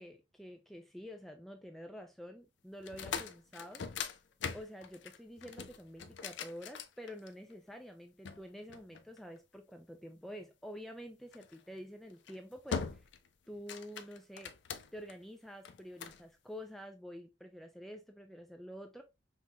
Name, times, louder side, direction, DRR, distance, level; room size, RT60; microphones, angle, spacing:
voice 1, 0.0-3.8 4.5-13.0 13.5-14.5 14.9-19.0, equal, ahead, 0.4 m, -48 dB
sound 1, 2.8-7.5 8.2-9.6 11.3-11.6 12.1-12.4 12.7-13.3 13.5-15.1 15.6-16.2, left 6 dB, 65° left, 0.5 m, -42 dB
5.4 x 3.0 x 2.3 m
head